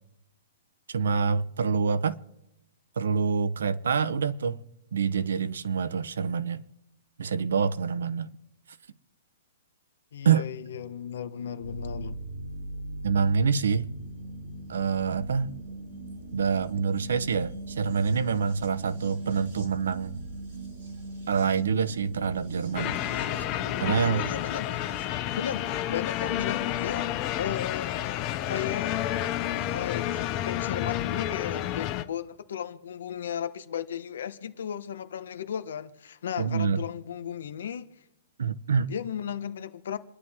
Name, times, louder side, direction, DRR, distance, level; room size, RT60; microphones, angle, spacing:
voice 1, 0.9-2.2 3.0-4.6 4.9-6.6 7.2-8.3 10.2-10.4 13.0-13.9 14.7-15.5 16.3-20.2 21.3-23.0 23.4-23.5 23.8-24.3 36.4-36.8 38.4-38.9, right 6 dB, 80° right, 0.9 m, -26 dB
voice 2, 10.1-12.2 23.9-24.7 25.3-27.1 27.3-28.0 28.5-29.0 29.7-30.2 30.4-37.9 38.9-40.0, left 9 dB, 60° left, 1.1 m, -35 dB
sound 1, 11.6-28.6 29.8-29.9, right 2 dB, 35° right, 5.0 m, -41 dB
sound 2, 22.7-32.0, left 12 dB, 20° left, 0.6 m, -30 dB
28.5 x 11.0 x 3.6 m
hypercardioid pair, 180°, 0 cm